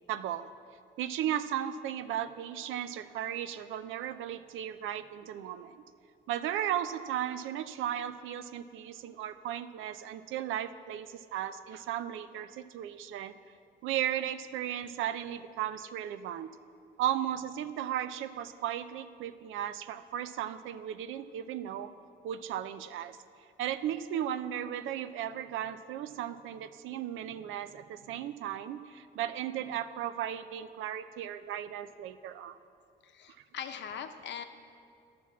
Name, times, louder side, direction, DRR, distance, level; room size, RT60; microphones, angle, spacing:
voice 1, 0.1-0.5 1.0-5.8 6.3-13.3 13.8-16.5 17.0-21.9 22.2-23.2 23.6-32.6, right 11 dB, 85° right, 12 dB, 0.5 m, -35 dB
voice 2, 33.0-34.4, left 8 dB, 65° left, 7 dB, 0.8 m, -41 dB
10.0 x 5.9 x 7.2 m, 2.5 s
cardioid pair, 90°, 20 cm